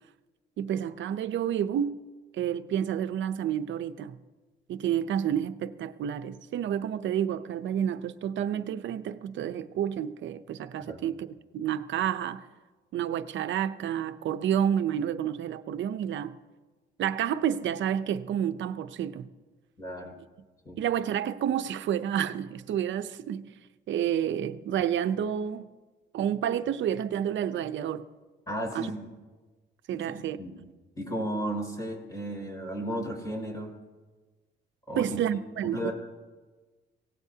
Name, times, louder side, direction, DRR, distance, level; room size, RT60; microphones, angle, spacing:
voice 1, 0.6-2.0 2.3-4.2 4.7-12.4 12.9-16.4 17.0-19.3 20.8-23.5 23.9-25.7 26.1-28.0 28.7-28.9 29.9-30.4 35.0-35.9, right 9 dB, 70° right, 0.8 m, -29 dB
voice 2, 19.8-20.1 20.6-20.8 28.5-29.1 30.1-30.7 31.0-33.7 34.9-35.2 35.7-35.9, right 1 dB, 20° left, 5.7 m, -34 dB
24.0 x 17.5 x 2.9 m
cardioid pair, 90°, 20 cm